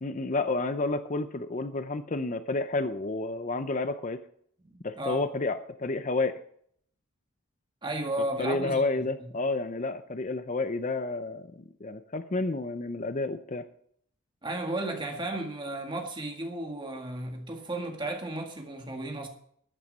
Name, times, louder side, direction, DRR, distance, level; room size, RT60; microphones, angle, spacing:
voice 1, 0.0-4.2 4.8-6.4 8.4-13.6, left 3 dB, 35° left, 0.6 m, -30 dB
voice 2, 4.7-5.3 7.8-9.3 14.4-19.3, right 2 dB, 20° right, 1.9 m, -34 dB
13.0 x 9.0 x 5.4 m
head